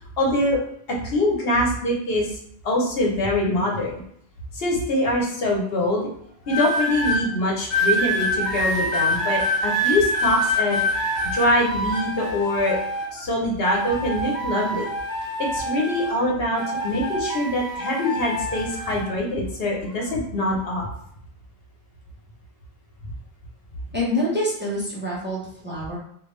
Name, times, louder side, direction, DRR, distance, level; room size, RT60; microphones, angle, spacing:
voice 1, 0.2-0.6 0.9-2.4 2.6-3.9 4.5-6.0 6.5-10.9 11.3-12.8 13.1-14.9 15.4-20.9, left 1 dB, 70° left, -1 dB, 1.0 m, -24 dB
sound 1, 6.5-7.2 7.7-13.2 13.6-16.2 16.5-19.1 19.8-20.1, equal, 45° left, 1.1 m, -26 dB
voice 2, 23.9-26.0, left 1 dB, 10° right, -7 dB, 1.0 m, -26 dB
3.3 x 2.4 x 3.1 m, 0.67 s
omnidirectional pair, 1.1 m